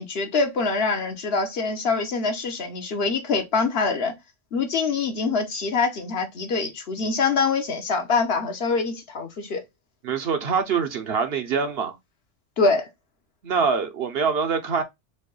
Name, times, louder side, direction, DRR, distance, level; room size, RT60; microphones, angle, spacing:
voice 1, 0.0-4.1 4.5-9.6 12.6-12.9, left 4 dB, 60° left, 1.0 m, -24 dB
voice 2, 10.0-12.0 13.4-14.8, right 5 dB, 60° right, 0.8 m, -24 dB
4.4 x 2.2 x 3.1 m
omnidirectional pair, 1.3 m